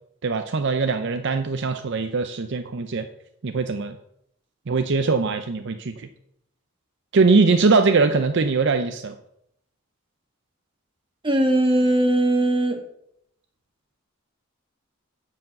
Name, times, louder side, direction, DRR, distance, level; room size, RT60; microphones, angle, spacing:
voice 1, 0.2-3.1 3.4-4.0 4.7-6.1 7.1-9.2, right 4 dB, 55° right, 7 dB, 0.6 m, -21 dB
voice 2, 11.2-12.8, right 1 dB, 25° right, 4 dB, 1.5 m, -20 dB
9.5 x 4.8 x 7.6 m, 0.75 s
head